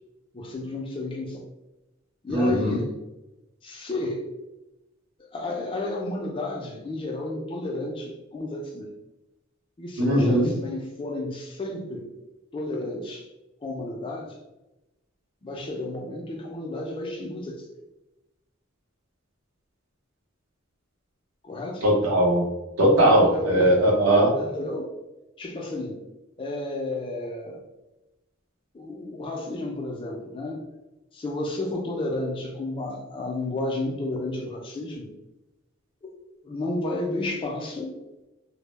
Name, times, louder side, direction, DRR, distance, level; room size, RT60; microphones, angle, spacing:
voice 1, 0.3-1.4 2.2-2.9 3.6-4.2 5.3-8.9 9.8-12.1 12.5-13.2 13.6-14.3 15.4-17.6 21.5-21.8 23.3-23.9 24.3-24.9 25.4-26.0 26.4-27.6 28.8-30.6 31.2-35.1 36.4-37.9, left 2 dB, 25° left, 0 dB, 0.3 m, -32 dB
voice 2, 2.3-2.8 10.0-10.5 21.8-22.5 22.8-24.3, right 1 dB, 75° right, -1 dB, 0.6 m, -19 dB
2.0 x 2.0 x 3.1 m, 0.98 s
head